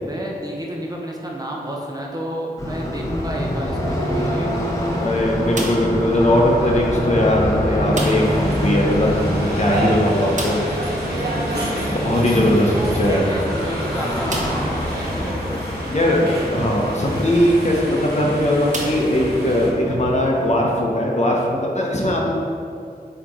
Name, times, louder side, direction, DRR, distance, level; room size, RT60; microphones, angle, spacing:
voice 1, 0.0-4.5 12.7-15.6, right 1 dB, 25° right, -2 dB, 0.9 m, -30 dB
sound 1, 2.6-20.6, equal, 20° left, 1.3 m, -26 dB
voice 2, 5.0-9.1 9.4-10.6 11.5-11.6 12.0-13.3 15.9-22.3, left 1 dB, 45° left, -2 dB, 1.0 m, -19 dB
sound 2, 5.5-6.1 7.9-8.5 8.7-8.8 9.1-9.2 10.3-10.9 12.6-12.7 13.4-13.5 14.3-14.8 15.5-15.6 17.6-17.8 18.7-19.6, right 1 dB, 50° right, 1.0 m, -30 dB
sound 3, 7.9-19.7, right 1 dB, 80° right, 1.5 m, -29 dB
8.2 x 3.1 x 3.9 m, 2.4 s
wide cardioid pair, 60°, 16 cm